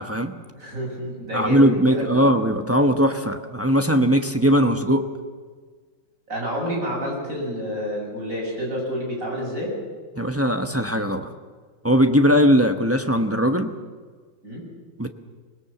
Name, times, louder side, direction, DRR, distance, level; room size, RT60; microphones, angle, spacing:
voice 1, 0.0-0.3 1.3-5.1 10.1-11.3 11.8-13.7 15.0-15.1, equal, 15° right, 5 dB, 0.4 m, -19 dB
voice 2, 0.5-2.3 6.3-9.7 14.4-14.6, equal, 40° right, -2 dB, 7.6 m, -29 dB
25.0 x 19.5 x 7.1 m, 1.5 s
omnidirectional pair, 2.1 m